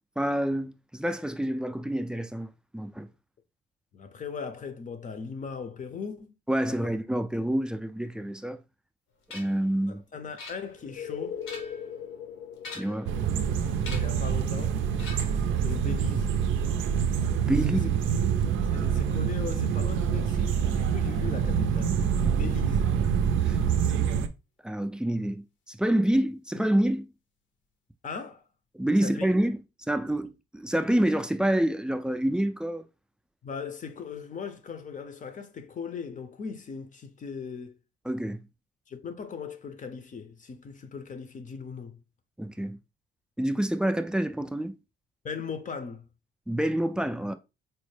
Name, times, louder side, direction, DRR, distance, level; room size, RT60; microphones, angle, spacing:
voice 1, 0.2-3.1 6.5-8.6 9.3-10.0 12.7-13.1 17.4-17.9 23.5-23.6 24.6-27.1 28.7-29.6 29.9-32.8 38.1-38.4 42.4-42.8 43.4-44.8 46.5-47.4, right 1 dB, 5° right, 0.3 m, -27 dB
voice 2, 3.9-6.3 6.6-6.9 9.9-11.4 13.6-14.8 15.6-16.4 17.7-17.8 18.7-23.0 28.0-28.4 29.0-29.3 33.4-37.8 38.9-42.0 45.2-46.1, left 6 dB, 40° left, 0.6 m, -39 dB
sound 1, 9.3-9.6 10.4-11.0 11.3-11.9 12.6-13.1 13.8-14.2 15.0-15.5, left 3 dB, 90° left, 1.0 m, -43 dB
sound 2, 10.7-22.3 26.6-26.7, left 7 dB, 70° left, 0.7 m, -45 dB
sound 3, 13.1-24.3, right 7 dB, 80° right, 0.4 m, -26 dB
4.2 x 2.1 x 3.1 m
cardioid pair, 90°, 20 cm